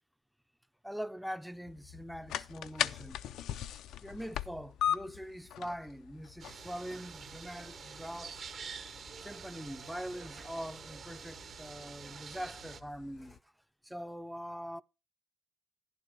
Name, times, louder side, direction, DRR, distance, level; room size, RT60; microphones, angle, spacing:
voice 1, 0.8-3.2 4.0-8.5 9.2-13.5 13.8-14.8, equal, ahead, 0.4 m, -43 dB
sound 1, 1.7-13.4, left 10 dB, 85° left, 0.5 m, -41 dB
sound 2, 6.4-12.8, right 6 dB, 55° right, 1.0 m, -47 dB
11.0 x 9.8 x 3.0 m
cardioid pair, 90°, 0 cm